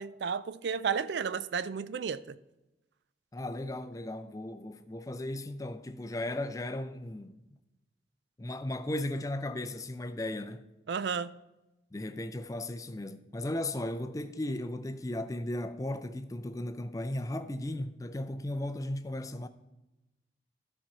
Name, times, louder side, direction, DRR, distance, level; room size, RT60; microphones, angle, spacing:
voice 1, 0.0-2.4 10.9-11.4, right 6 dB, 70° right, 0.4 m, -33 dB
voice 2, 3.3-7.3 8.4-10.7 11.9-19.5, left 1 dB, 20° left, 0.4 m, -36 dB
13.0 x 4.5 x 5.5 m
head